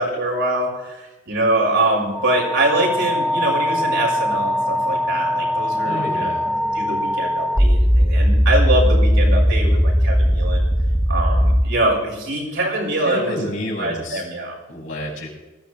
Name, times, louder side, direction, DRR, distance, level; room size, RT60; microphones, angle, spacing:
voice 1, 0.0-6.3 6.7-10.7 11.1-13.5 13.8-14.6, right 1 dB, 65° right, -2 dB, 6.4 m, -23 dB
sound 1, 2.1-11.6, equal, ahead, 0.8 m, -19 dB
voice 2, 5.8-6.5 13.0-14.2 14.7-15.3, left 1 dB, 65° left, -3 dB, 6.1 m, -29 dB
20.5 x 15.5 x 3.5 m, 1.1 s
head